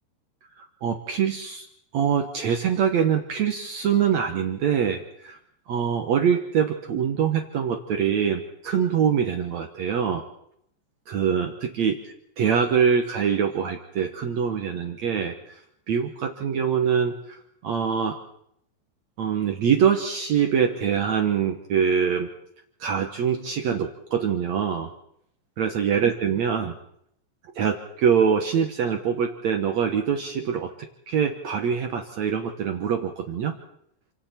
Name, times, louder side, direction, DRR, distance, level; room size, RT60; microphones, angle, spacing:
voice 1, 0.6-1.7 1.9-5.4 5.7-10.2 11.1-12.0 12.4-15.5 15.9-17.2 17.6-18.2 19.2-22.3 22.8-24.9 25.6-26.7 27.5-30.7 31.1-33.5, right 7 dB, 90° right, 4 dB, 1.5 m, -24 dB
28.5 x 26.0 x 4.5 m, 0.73 s
omnidirectional pair, 5.4 m